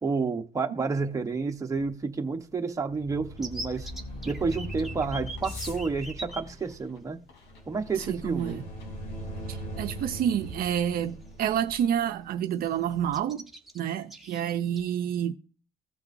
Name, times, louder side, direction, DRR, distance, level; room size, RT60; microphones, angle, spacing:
voice 1, 0.0-3.9 4.2-7.2 7.7-8.6, right 4 dB, 20° right, 1.0 m, -30 dB
sound 1, 0.9-11.9, left 2 dB, 75° left, 3.9 m, -53 dB
sound 2, 2.9-13.2, equal, 50° left, 3.5 m, -41 dB
sound 3, 3.4-6.4 7.4-7.5 7.8-8.0 9.6-9.7 10.2-10.4 10.8-11.6 11.9-12.1 12.3-12.7 13.1-14.8, right 2 dB, ahead, 1.3 m, -41 dB
voice 2, 8.0-8.6 9.5-13.5 13.7-15.3, right 9 dB, 60° right, 0.6 m, -29 dB
16.5 x 5.8 x 2.6 m
cardioid pair, 110°, 17 cm